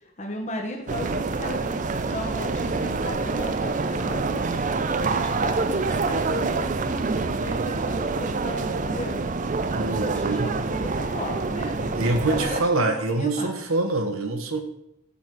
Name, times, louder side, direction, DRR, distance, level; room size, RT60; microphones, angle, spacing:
voice 1, 0.2-9.2 10.0-13.6, left 1 dB, 35° left, 1 dB, 1.2 m, -36 dB
sound 1, 0.9-12.6, right 3 dB, 35° right, 0.4 m, -26 dB
voice 2, 9.7-10.5 12.0-14.6, right 2 dB, 85° right, 5 dB, 1.3 m, -25 dB
9.1 x 4.2 x 6.2 m, 0.81 s
head